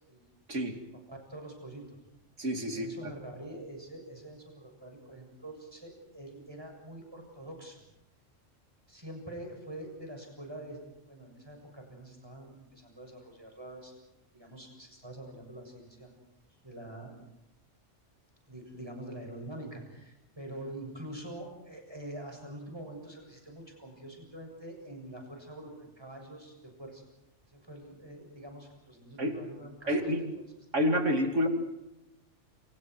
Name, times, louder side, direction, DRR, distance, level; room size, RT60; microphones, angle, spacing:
voice 1, 1.1-2.0 2.7-7.8 8.9-13.9 14.3-16.1 16.6-17.1 18.5-27.0 27.5-30.1, right 1 dB, 20° right, 2 dB, 7.2 m, -45 dB
voice 2, 2.4-3.1 29.2-29.3 29.9-30.2 30.7-31.5, equal, 70° right, 4 dB, 3.2 m, -28 dB
29.0 x 28.5 x 4.7 m, 0.90 s
omnidirectional pair, 1.3 m